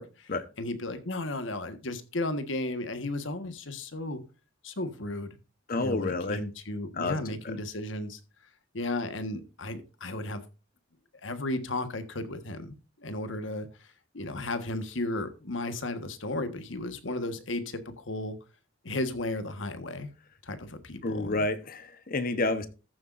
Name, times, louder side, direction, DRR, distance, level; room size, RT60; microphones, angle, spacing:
voice 1, 0.6-4.2 4.6-5.3 5.7-8.2 8.7-10.4 11.2-13.9 14.1-18.4 18.8-20.1 20.4-21.4, left 2 dB, 70° left, 1.4 m, -34 dB
voice 2, 5.7-6.4 6.9-7.2 7.4-7.6 21.0-22.7, left 2 dB, 45° left, 1.0 m, -29 dB
14.5 x 8.0 x 2.6 m
head